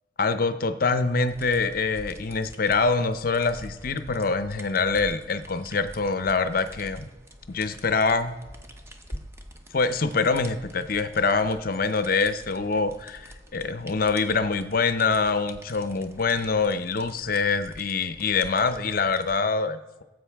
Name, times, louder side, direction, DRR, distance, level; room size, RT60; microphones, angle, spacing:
voice 1, 0.2-7.1 7.5-8.3 9.7-20.0, left 4 dB, 45° left, 11 dB, 0.6 m, -25 dB
sound 1, 1.3-19.4, equal, 15° right, 0.7 m, -46 dB
17.5 x 7.9 x 3.5 m, 1.1 s
head